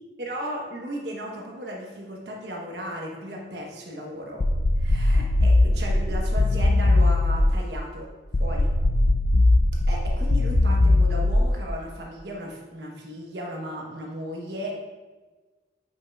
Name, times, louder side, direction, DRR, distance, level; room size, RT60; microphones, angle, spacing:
voice 1, 0.2-4.4 4.8-8.1 8.4-8.7 9.9-14.8, equal, 70° right, -1 dB, 1.1 m, -35 dB
sound 1, 4.4-7.7 8.3-11.7, left 2 dB, 35° left, 0.3 m, -20 dB
9.1 x 5.5 x 2.3 m, 1.3 s
head